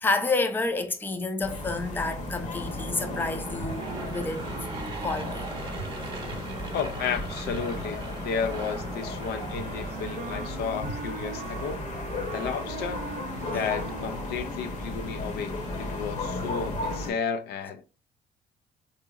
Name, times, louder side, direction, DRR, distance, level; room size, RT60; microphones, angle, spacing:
voice 1, 0.0-4.5 5.0-5.5, left 3 dB, 10° left, 0.5 m, -29 dB
sound 1, 1.4-17.1, left 2 dB, 45° left, 1.0 m, -35 dB
Aircraft / Engine, 3.0-11.0, right 4 dB, 30° right, 0.8 m, -40 dB
voice 2, 6.7-11.9 12.3-13.0 13.5-17.8, left 6 dB, 70° left, 0.5 m, -33 dB
Wind instrument woodwind instrument, 9.4-14.6, right 7 dB, 55° right, 0.4 m, -41 dB
3.8 x 2.8 x 2.4 m
cardioid pair, 110°, 17 cm